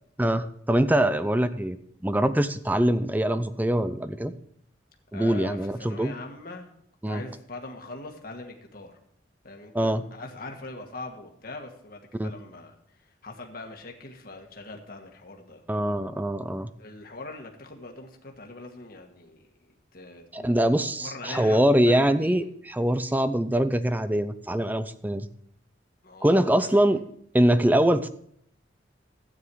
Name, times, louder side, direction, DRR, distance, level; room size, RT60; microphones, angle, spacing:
voice 1, 0.2-1.8 2.0-4.3 5.1-6.1 7.0-7.2 9.7-10.0 12.2-12.3 15.7-16.7 20.3-25.3 26.2-27.0 27.3-28.1, right 1 dB, 10° right, 12 dB, 0.5 m, -23 dB
voice 2, 5.1-6.7 7.1-8.9 9.4-12.8 13.2-15.6 16.8-22.4 26.0-27.0, left 2 dB, 50° left, 2 dB, 1.6 m, -42 dB
13.0 x 9.3 x 4.7 m, 0.68 s
head